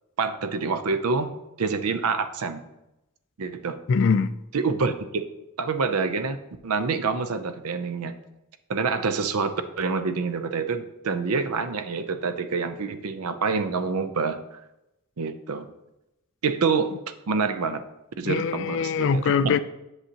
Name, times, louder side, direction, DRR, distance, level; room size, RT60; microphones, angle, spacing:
voice 1, 0.2-1.3 1.6-2.6 3.4-3.8 4.5-5.3 5.6-6.4 6.6-8.1 8.7-14.6 15.2-15.7 16.4-16.9 17.3-17.8 18.2-19.3, right 4 dB, 80° right, 11 dB, 0.6 m, -27 dB
voice 2, 3.9-4.4 18.3-19.6, left 5 dB, 55° left, 13 dB, 0.4 m, -22 dB
7.9 x 6.3 x 2.9 m, 0.91 s
head